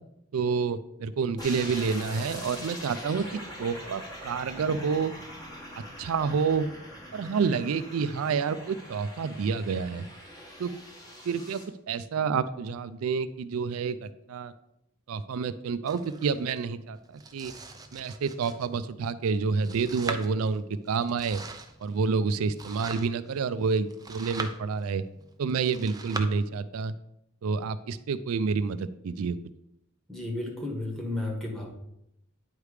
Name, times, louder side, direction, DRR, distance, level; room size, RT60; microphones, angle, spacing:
voice 1, 0.3-3.2 3.6-5.1 6.0-6.7 7.1-10.1 10.6-10.7 11.3-11.6 11.9-14.5 15.1-17.5 17.9-21.4 21.8-25.0 25.4-26.9 27.4-29.4, right 5 dB, 90° right, 13 dB, 0.4 m, -28 dB
sound 1, 1.4-11.6, equal, 20° left, 1.6 m, -43 dB
Domestic sounds home sounds, 15.9-26.2, right 3 dB, 20° right, 0.5 m, -42 dB
voice 2, 30.1-31.7, left 2 dB, ahead, -2 dB, 1.7 m, -33 dB
9.6 x 3.3 x 4.9 m, 0.81 s
head